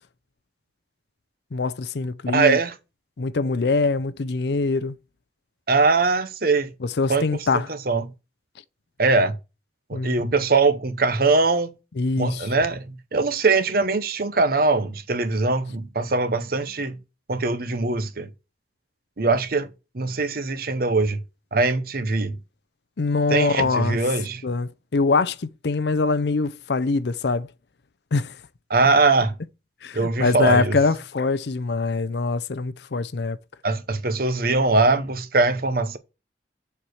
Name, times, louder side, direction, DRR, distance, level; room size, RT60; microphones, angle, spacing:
voice 1, 1.5-2.6 3.2-5.0 6.8-7.7 9.9-10.3 12.0-12.5 23.0-24.0 24.4-27.5 28.1-28.4 29.8-33.4, left 3 dB, 65° left, 0.5 m, -23 dB
voice 2, 2.3-2.7 5.7-6.7 7.1-7.2 7.5-8.0 9.0-9.4 9.9-11.7 12.2-12.8 13.1-17.0 17.3-18.3 19.2-19.7 19.9-21.2 21.5-22.4 23.3-24.4 28.7-29.3 29.9-30.7 33.6-36.0, right 3 dB, 55° right, 0.9 m, -21 dB
7.1 x 4.6 x 6.3 m
head